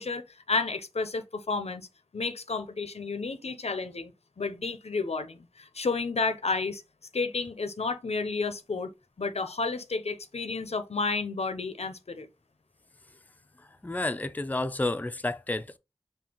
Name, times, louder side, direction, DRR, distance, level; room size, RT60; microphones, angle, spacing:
voice 1, 0.0-1.9 2.1-4.1 4.4-6.8 7.1-8.9 9.2-12.3, left 4 dB, 90° left, 0.6 m, -31 dB
voice 2, 13.8-15.8, left 2 dB, 15° left, 0.4 m, -30 dB
5.3 x 2.7 x 2.9 m
wide cardioid pair, 55°, 10 cm